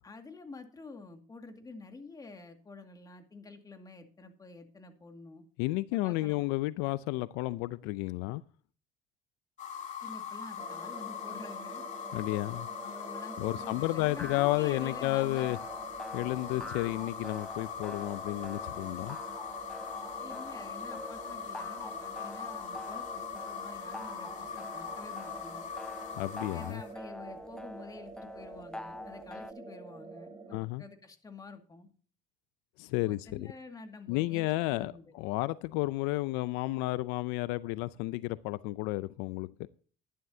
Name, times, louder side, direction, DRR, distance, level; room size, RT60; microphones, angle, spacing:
voice 1, 0.0-5.4 5.9-6.4 10.0-11.9 12.8-15.6 20.2-25.7 26.5-31.9 32.9-35.1, left 3 dB, 20° left, 2.1 m, -49 dB
voice 2, 5.6-8.4 12.1-12.7 13.4-15.6 16.1-19.2 26.2-26.8 30.5-30.8 32.8-33.5 34.1-39.7, left 19 dB, 85° left, 0.5 m, -32 dB
sound 1, 9.6-26.9, left 7 dB, 45° left, 2.5 m, -41 dB
sound 2, 10.6-30.6, right 4 dB, 30° right, 3.2 m, -48 dB
sound 3, 14.2-29.5, left 2 dB, 5° left, 0.3 m, -46 dB
12.0 x 11.0 x 2.7 m
cardioid pair, 110°, 17 cm